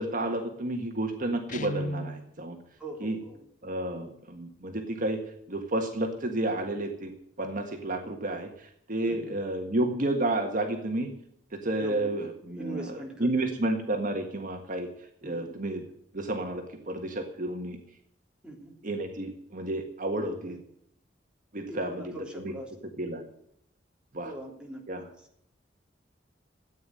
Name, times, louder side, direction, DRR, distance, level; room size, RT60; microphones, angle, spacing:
voice 1, 0.0-2.6 3.0-3.2 3.6-5.2 5.5-7.1 7.4-11.1 11.5-14.9 15.2-15.8 16.1-17.8 18.8-20.6 21.5-22.1 22.4-22.5 23.0-23.2 24.1-24.3 24.9-25.1, right 1 dB, 45° right, 4 dB, 1.7 m, -31 dB
Guitar, 1.5-2.3, left 1 dB, 45° left, 0.8 m, -34 dB
voice 2, 2.8-3.4 9.0-9.4 11.7-13.5 15.2-15.6 18.4-18.8 20.5-20.6 21.7-22.7 24.2-24.8, right 1 dB, 5° right, -1 dB, 3.5 m, -41 dB
14.0 x 9.3 x 7.7 m, 0.71 s
head